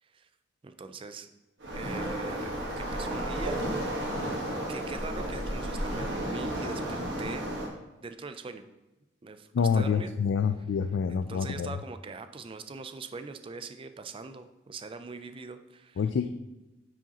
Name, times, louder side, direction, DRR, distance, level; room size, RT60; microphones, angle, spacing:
voice 1, 0.6-1.3 1.7-3.6 4.7-7.5 8.0-8.7 9.2-10.2 11.1-16.0, right 4 dB, 30° right, 9 dB, 0.4 m, -42 dB
Waves surf, 1.6-7.7, right 1 dB, 65° right, 1.5 m, -33 dB
voice 2, 9.5-11.8 16.0-16.3, left 6 dB, 70° left, 9 dB, 0.3 m, -27 dB
9.3 x 4.9 x 2.9 m, 1.0 s
head